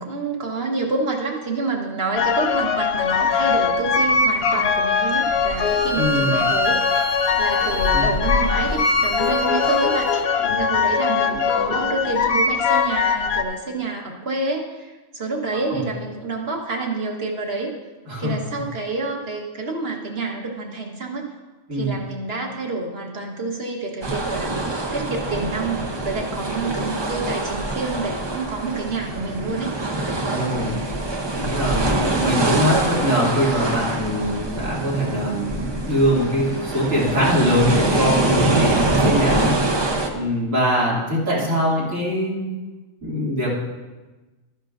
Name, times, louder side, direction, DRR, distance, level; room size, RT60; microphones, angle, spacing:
voice 1, 0.0-6.8 7.4-10.3 10.6-17.7 18.2-21.3 21.7-24.5 24.9-29.7, right 3 dB, 50° right, 1 dB, 1.5 m, -28 dB
sound 1, 2.2-13.4, left 5 dB, 60° left, 0.8 m, -21 dB
Bowed string instrument, 4.9-10.3, right 1 dB, 85° left, 3.2 m, -30 dB
voice 2, 6.0-6.3 7.9-8.1 18.1-18.3 21.7-21.9 30.2-30.8 31.3-39.5 39.8-42.5 43.0-43.5, equal, 85° right, -7 dB, 3.0 m, -22 dB
sound 2, 24.0-40.1, right 2 dB, 25° right, 0.6 m, -24 dB
13.0 x 10.0 x 2.5 m, 1.2 s
omnidirectional pair, 1.3 m